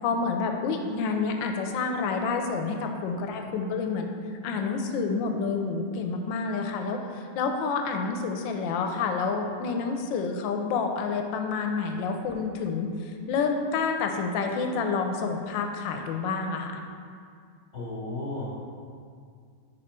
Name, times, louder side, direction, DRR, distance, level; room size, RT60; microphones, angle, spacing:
voice 1, 0.0-4.1 4.4-16.7, left 4 dB, 75° left, 4 dB, 1.2 m, -28 dB
voice 2, 17.7-18.5, left 2 dB, 50° left, -5 dB, 1.0 m, -33 dB
5.3 x 4.9 x 4.3 m, 2.2 s
omnidirectional pair, 2.2 m